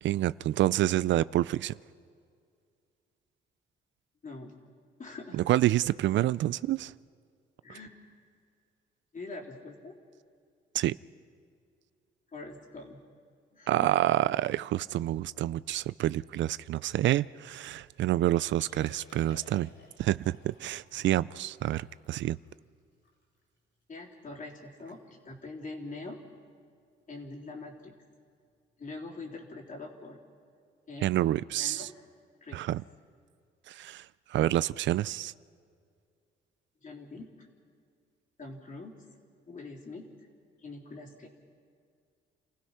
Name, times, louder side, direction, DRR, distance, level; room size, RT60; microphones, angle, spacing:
voice 1, 0.0-1.7 5.3-6.9 10.7-11.0 13.7-19.7 20.0-22.4 31.0-31.9 32.5-32.8 33.7-35.3, right 14 dB, 70° right, 0.4 m, -28 dB
voice 2, 4.2-4.5 5.0-5.4 7.6-8.0 9.1-10.0 12.3-13.0 13.5-13.9 23.9-26.2 27.1-27.9 28.8-30.2 30.9-31.1 31.6-32.0 32.4-32.6 36.8-37.5 38.4-38.9 39.5-40.1 40.6-41.3, left 3 dB, 40° left, 3.6 m, -43 dB
Liquid, 18.6-23.8 24.3-24.4 24.7-25.0 25.2-25.5 26.1-26.3 27.8-27.9, left 3 dB, 70° left, 7.3 m, -58 dB
29.0 x 16.0 x 5.7 m
cardioid pair, 90°, 20 cm